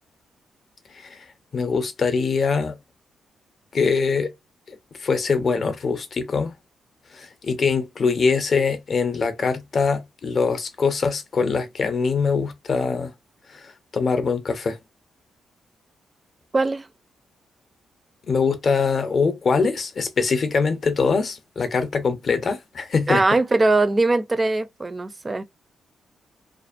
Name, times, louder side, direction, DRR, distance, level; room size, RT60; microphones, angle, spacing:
voice 1, 1.5-2.8 3.7-4.3 4.7-6.5 7.1-13.1 13.5-13.6 13.9-14.8 18.3-23.2, left 5 dB, 40° left, 0.5 m, -23 dB
voice 2, 16.5-16.9 23.1-25.4, right 2 dB, 20° right, 0.3 m, -21 dB
2.4 x 2.3 x 2.4 m
wide cardioid pair, 145°, 0 cm